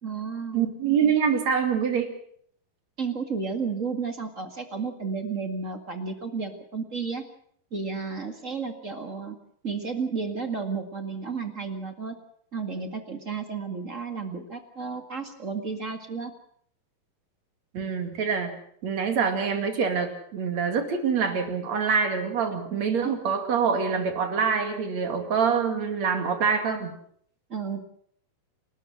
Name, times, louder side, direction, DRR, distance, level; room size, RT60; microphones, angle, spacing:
voice 1, 0.0-0.7 3.0-7.2 7.7-9.3 9.6-12.2 12.5-16.3 22.5-23.2 27.5-27.8, right 5 dB, 30° right, 6 dB, 1.6 m, -32 dB
voice 2, 0.5-2.1 17.7-18.6 18.8-27.0, right 6 dB, 50° right, 6 dB, 3.4 m, -25 dB
29.5 x 13.5 x 7.7 m, 0.64 s
omnidirectional pair, 4.2 m